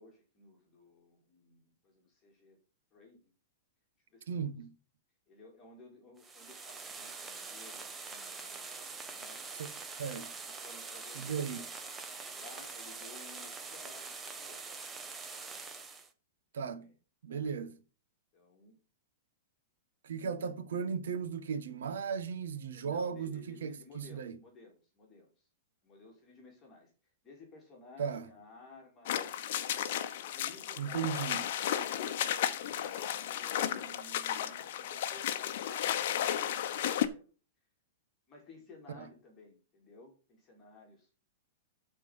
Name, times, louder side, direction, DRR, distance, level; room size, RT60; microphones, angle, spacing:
voice 1, 0.0-2.6 2.9-3.3 4.1-4.5 5.3-9.8 10.4-11.7 12.3-14.7 16.6-16.9 17.3-17.5 18.3-18.8 22.7-25.5 25.8-26.9 27.2-29.3 29.6-31.6 33.1-37.3 38.3-41.1, left 2 dB, 20° left, 2.4 m, -56 dB
voice 2, 4.3-4.7 9.6-9.7 10.0-10.3 11.1-11.6 16.5-16.9 17.2-17.8 20.0-24.3 28.0-28.2 30.8-31.4 38.9-39.0, right 6 dB, 80° right, 1.5 m, -36 dB
sound 1, 6.2-16.1, right 4 dB, 10° right, 0.9 m, -44 dB
sound 2, 29.1-37.1, left 11 dB, 50° left, 0.9 m, -34 dB
12.5 x 4.4 x 5.6 m
supercardioid pair, 170°, 0 cm